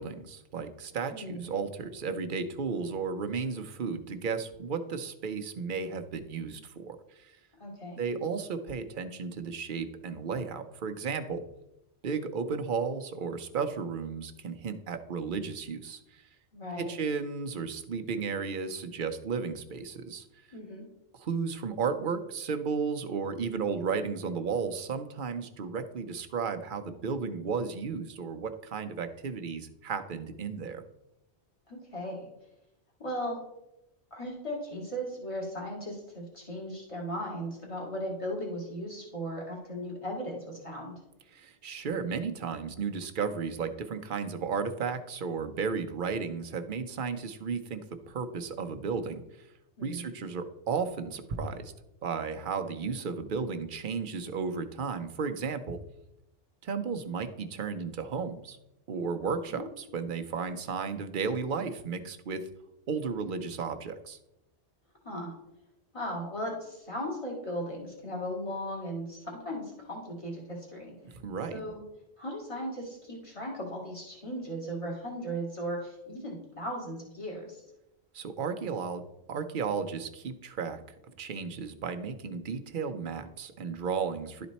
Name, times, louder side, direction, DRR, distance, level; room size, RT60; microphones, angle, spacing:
voice 1, 0.0-7.3 8.0-11.4 12.0-16.2 16.8-20.3 21.2-30.8 41.3-49.2 49.8-51.7 52.0-55.8 56.6-58.6 58.9-62.4 62.9-64.2 71.1-71.6 78.1-79.0 79.3-80.8 81.2-84.5, right 5 dB, 55° right, 8 dB, 0.8 m, -34 dB
voice 2, 1.1-1.4 7.6-8.0 16.5-16.9 20.5-20.8 31.7-32.3 33.0-33.4 34.1-40.9 49.8-50.0 59.5-59.7 65.0-65.3 65.9-70.9 71.5-71.8 72.2-77.6, equal, 30° left, -3 dB, 2.2 m, -37 dB
11.5 x 4.3 x 4.1 m, 0.89 s
omnidirectional pair, 1.1 m